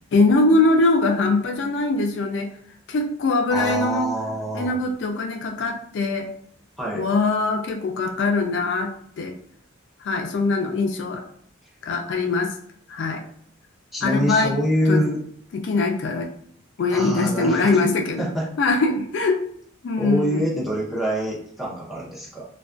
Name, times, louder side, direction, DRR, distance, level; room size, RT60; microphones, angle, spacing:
voice 1, 0.1-2.5 2.9-4.1 4.5-6.3 6.9-9.3 10.0-11.2 11.8-12.5 12.9-13.2 14.0-14.6 14.9-15.0 15.5-16.3 16.8-18.3 18.6-19.4 19.8-20.4, left 3 dB, 55° left, 3 dB, 0.3 m, -22 dB
voice 2, 3.5-4.8 6.8-7.0 13.9-15.2 16.9-17.7 18.2-18.5 20.0-22.5, equal, ahead, -5 dB, 0.5 m, -25 dB
2.3 x 2.2 x 2.4 m, 0.65 s
head